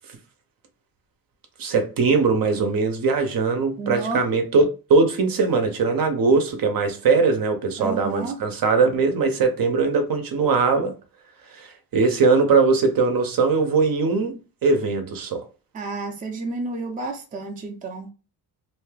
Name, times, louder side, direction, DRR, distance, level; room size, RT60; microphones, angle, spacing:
voice 1, 1.6-10.9 11.5-11.7 11.9-15.4, right 4 dB, 55° right, 0.7 m, -20 dB
voice 2, 3.8-4.2 7.8-8.4 15.7-18.1, right 3 dB, 20° right, 0.5 m, -31 dB
2.7 x 2.3 x 3.2 m
wide cardioid pair, 140°, 40 cm